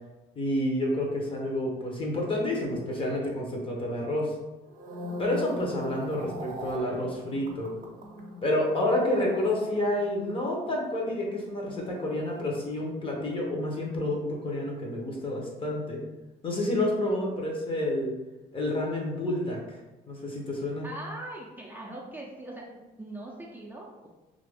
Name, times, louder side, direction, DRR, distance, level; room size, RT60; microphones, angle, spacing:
voice 1, 0.4-4.3 5.2-7.7 8.4-16.0 16.4-18.1 18.5-19.8 20.1-20.9, left 1 dB, 30° left, -1 dB, 0.8 m, -29 dB
sound 1, 4.6-13.0 13.3-13.7, left 1 dB, 55° right, 0.6 m, -42 dB
voice 2, 20.8-24.1, right 1 dB, 10° right, -4 dB, 0.5 m, -41 dB
2.8 x 2.5 x 3.4 m, 1.1 s
cardioid pair, 110°, 17 cm